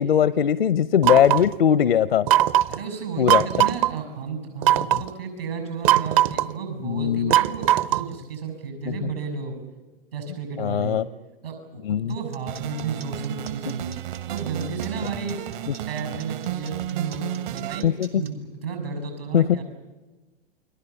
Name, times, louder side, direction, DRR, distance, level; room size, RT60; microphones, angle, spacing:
voice 1, 0.0-2.3 3.2-3.4 6.8-7.3 9.0-9.1 10.6-11.0 11.8-12.1 15.7-15.8 17.8-18.2 19.3-19.6, left 9 dB, 75° left, 18 dB, 0.7 m, -20 dB
sound 1, 1.0-1.5 2.3-2.8 3.3-3.9 4.6-5.1 5.8-6.5 7.3-8.1, right 13 dB, 40° right, 0.7 m, -19 dB
voice 2, 2.7-9.6 10.1-11.0 11.4-13.9 14.2-15.4 15.9-17.9 18.1-19.6, right 5 dB, 75° right, 7 dB, 6.7 m, -33 dB
sound 2, 12.1-18.3, right 5 dB, 90° right, 3.1 m, -46 dB
sound 3, 12.5-17.8, right 13 dB, 55° right, 1.3 m, -33 dB
29.5 x 22.0 x 7.0 m, 1.2 s
figure-of-eight pair, 110°, 30 cm